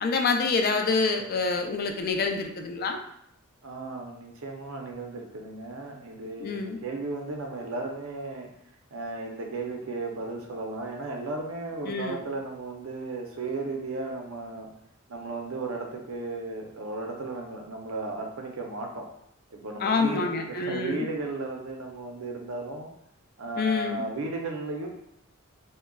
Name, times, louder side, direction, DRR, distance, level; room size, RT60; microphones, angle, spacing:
voice 1, 0.0-3.0 6.4-6.8 11.8-12.2 19.8-21.1 23.6-24.1, left 4 dB, 45° left, 4 dB, 0.3 m, -27 dB
voice 2, 3.6-8.5 8.9-14.7 15.1-19.0 19.5-22.9 23.4-24.9, right 3 dB, 75° right, 1 dB, 0.5 m, -35 dB
3.7 x 2.1 x 2.2 m, 0.74 s
head